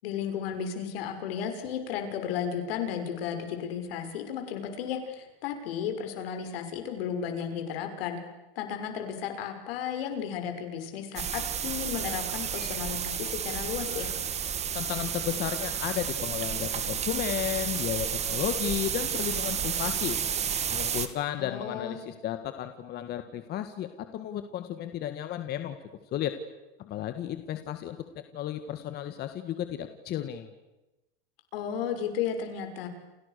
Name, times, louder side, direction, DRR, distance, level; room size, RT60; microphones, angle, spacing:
voice 1, 0.0-8.2 8.6-14.1 21.4-22.0 31.5-32.9, left 8 dB, 70° left, 6 dB, 6.3 m, -34 dB
sound 1, 11.2-21.1, right 8 dB, 20° right, 2.0 m, -31 dB
voice 2, 14.7-20.2 20.7-25.8 26.1-26.3 26.8-30.5, left 11 dB, 30° left, 8 dB, 1.8 m, -33 dB
29.5 x 29.0 x 6.8 m, 1.0 s
supercardioid pair, 150°, 31 cm